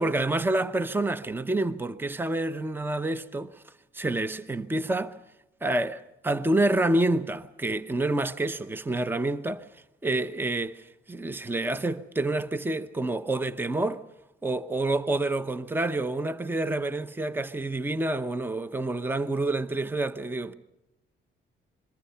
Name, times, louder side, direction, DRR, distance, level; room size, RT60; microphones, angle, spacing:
voice 1, 0.0-5.2 5.6-9.7 10.0-14.0 14.4-20.5, right 2 dB, 10° right, 0.8 m, -28 dB
26.0 x 23.0 x 5.7 m
cardioid pair, 90°, 20 cm